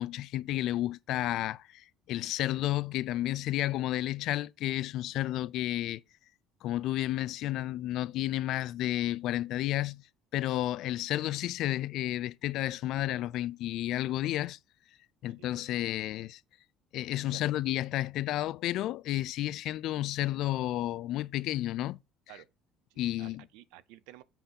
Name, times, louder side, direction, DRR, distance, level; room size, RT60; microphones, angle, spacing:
voice 1, 0.0-6.0 6.6-10.0 10.3-14.6 15.2-16.4 16.9-22.0 23.0-23.4, left 14 dB, 65° left, 0.4 m, -31 dB
voice 2, 22.9-24.2, right 13 dB, 85° right, 0.6 m, -53 dB
8.0 x 4.5 x 5.6 m
cardioid pair, 105°, 0 cm